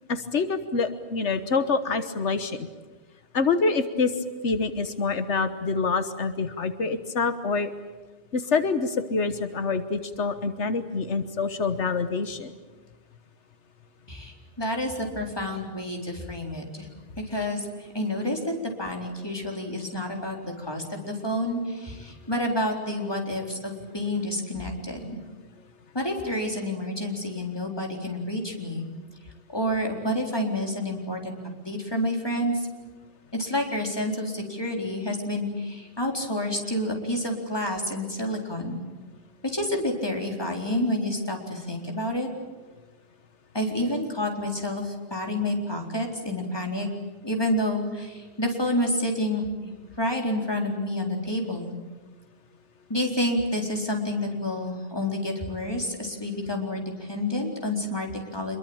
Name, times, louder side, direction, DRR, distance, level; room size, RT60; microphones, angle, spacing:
voice 1, 0.1-2.7 3.3-4.1 4.4-7.7 8.3-12.5, left 4 dB, 90° left, 10 dB, 1.6 m, -26 dB
voice 2, 14.1-16.9 17.3-25.2 25.9-28.9 29.5-31.4 31.7-32.7 33.3-38.8 39.5-42.3 43.5-46.9 47.2-49.4 50.0-51.8 52.9-58.6, left 1 dB, 20° left, 1 dB, 4.2 m, -29 dB
26.5 x 22.5 x 8.9 m, 1.3 s
omnidirectional pair, 1.1 m